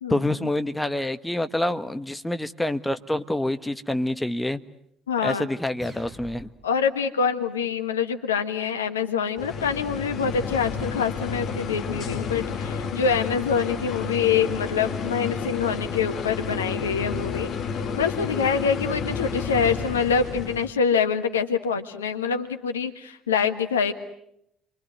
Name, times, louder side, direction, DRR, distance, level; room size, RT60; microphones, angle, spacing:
voice 1, 0.1-4.6 5.2-6.5, left 1 dB, 5° left, 10 dB, 1.4 m, -27 dB
voice 2, 5.1-5.5 6.6-17.5 18.0-23.9, left 6 dB, 80° left, 8 dB, 1.5 m, -25 dB
sound 1, 5.8-6.8, equal, 10° right, 7.7 m, -44 dB
sound 2, 9.4-20.7, left 6 dB, 50° left, 2.5 m, -31 dB
28.5 x 24.0 x 8.0 m, 0.77 s
figure-of-eight pair, 55°, 0 cm